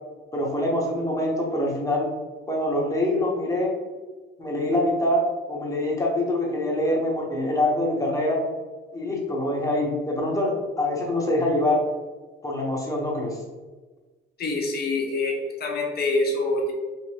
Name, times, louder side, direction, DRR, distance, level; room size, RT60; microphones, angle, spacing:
voice 1, 0.3-2.1 2.5-3.7 4.4-8.4 8.9-11.8 12.4-13.4, left 1 dB, 15° left, -2 dB, 0.9 m, -24 dB
voice 2, 14.4-16.7, left 2 dB, 55° left, 1 dB, 0.8 m, -25 dB
2.7 x 2.5 x 3.3 m, 1.3 s
cardioid pair, 90°, 20 cm